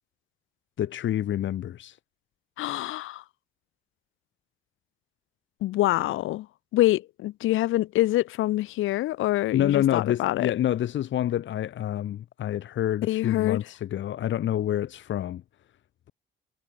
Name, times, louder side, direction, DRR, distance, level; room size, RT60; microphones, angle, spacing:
voice 1, 0.8-2.0 9.5-15.4, left 11 dB, 70° left, 2.3 m, -27 dB
voice 2, 2.6-3.2 5.6-6.5 6.7-10.5 13.1-13.6, left 16 dB, 90° left, 3.4 m, -25 dB
cardioid pair, 90°, 20 cm